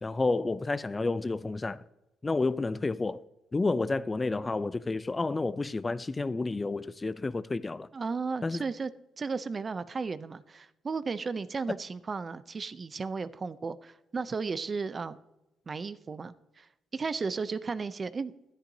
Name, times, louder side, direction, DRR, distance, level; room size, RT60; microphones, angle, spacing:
voice 1, 0.0-1.8 2.2-3.2 3.5-7.9 8.4-8.6, left 3 dB, 25° left, 0.4 m, -30 dB
voice 2, 7.9-8.9 9.2-15.2 15.7-18.3, right 4 dB, 35° right, 0.5 m, -34 dB
13.0 x 10.0 x 2.7 m
cardioid pair, 90°, 0 cm